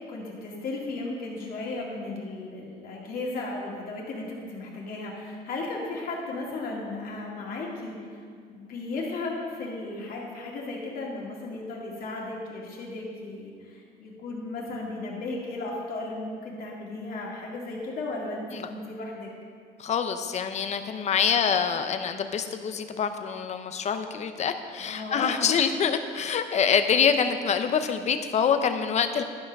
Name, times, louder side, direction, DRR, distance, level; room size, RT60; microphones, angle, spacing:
voice 1, 0.1-8.0 8.5-19.3 24.8-25.6, left 2 dB, 60° left, -3 dB, 2.2 m, -35 dB
voice 2, 19.8-29.2, left 7 dB, 40° left, 8 dB, 0.7 m, -25 dB
12.0 x 5.6 x 5.3 m, 2.2 s
cardioid pair, 110°, 17 cm